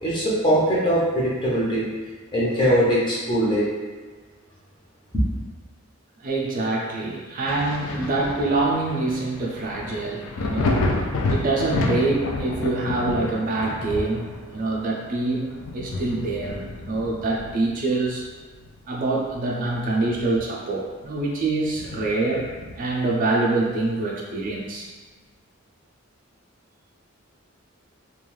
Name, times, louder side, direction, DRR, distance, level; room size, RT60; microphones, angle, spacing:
voice 1, 0.0-2.0 2.3-3.7, equal, 25° left, -7 dB, 0.7 m, -21 dB
voice 2, 6.2-10.9 11.3-18.2 18.9-22.5 22.8-24.9, right 2 dB, 40° right, -2 dB, 0.4 m, -25 dB
Thunder, 7.4-18.8 19.2-20.7 21.1-21.2 21.7-23.0 24.4-24.5, left 2 dB, 75° left, 0.4 m, -30 dB
2.3 x 2.3 x 3.1 m, 1.4 s
head